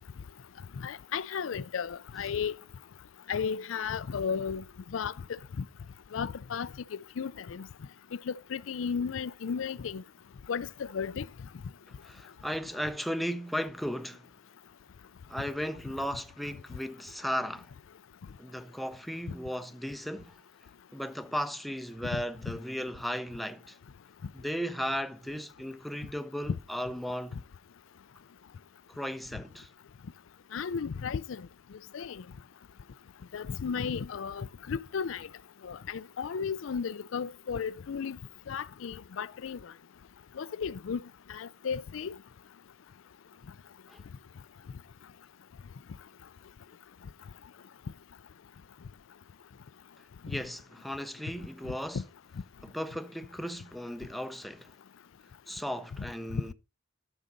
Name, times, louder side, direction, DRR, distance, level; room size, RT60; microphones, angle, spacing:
voice 1, 0.8-2.5 3.3-4.6 4.9-5.1 6.1-6.7 7.2-7.7 8.3-10.0 10.5-11.2 22.1-22.2 30.5-31.4 31.9-32.2 33.3-35.3 35.6-38.2 38.5-39.6 40.4-41.0 41.3-42.1, left 6 dB, 75° left, 0.4 m, -34 dB
voice 2, 12.0-14.3 15.3-17.7 18.4-20.4 20.9-23.8 24.3-27.4 28.9-29.7 43.9-44.0 50.3-52.0 52.6-54.7 55.5-56.5, equal, ahead, 0.5 m, -36 dB
12.0 x 6.4 x 4.0 m
head